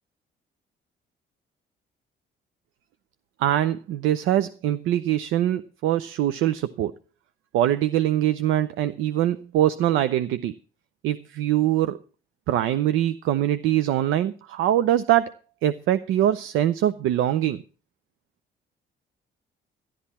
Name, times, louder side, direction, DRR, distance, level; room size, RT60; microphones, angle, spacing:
voice 1, 3.4-6.9 7.5-10.5 11.0-12.0 12.5-15.3 15.6-17.6, right 12 dB, 90° right, 0.6 m, -23 dB
13.0 x 11.5 x 4.2 m
cardioid pair, 90°, 20 cm